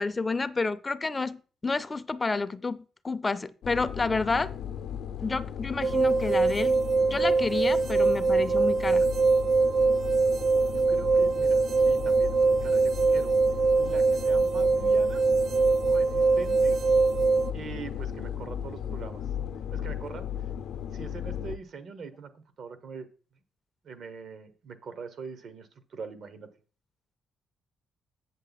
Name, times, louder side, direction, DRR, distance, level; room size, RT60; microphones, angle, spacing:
voice 1, 0.0-4.5 5.2-9.1, left 3 dB, 25° left, 0.5 m, -30 dB
sound 1, 3.6-21.6, left 8 dB, 70° left, 0.6 m, -36 dB
sound 2, 5.8-17.5, right 4 dB, 45° right, 0.4 m, -23 dB
voice 2, 10.7-13.3 13.8-15.2 15.9-16.8 17.5-19.2 19.7-20.5 20.9-23.1 23.8-26.5, right 5 dB, 60° right, 1.2 m, -42 dB
8.0 x 7.5 x 4.1 m
cardioid pair, 90°, 0 cm